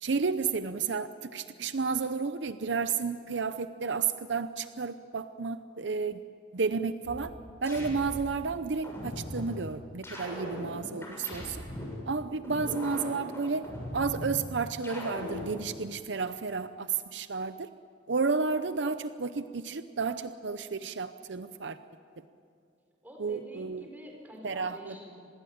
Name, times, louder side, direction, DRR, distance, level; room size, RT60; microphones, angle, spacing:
voice 1, 0.0-6.2 6.5-7.3 7.6-11.6 12.1-13.7 13.9-17.7 18.1-21.8 23.2-23.8 24.4-25.0, right 4 dB, 65° right, 11 dB, 0.7 m, -32 dB
sound 1, 7.0-8.3 8.8-9.5 10.0-12.0 12.4-14.3 14.8-15.5, left 1 dB, 15° left, 6.6 m, -39 dB
voice 2, 23.0-25.1, equal, 10° right, 1 dB, 4.9 m, -47 dB
26.5 x 20.5 x 8.7 m, 2.4 s
head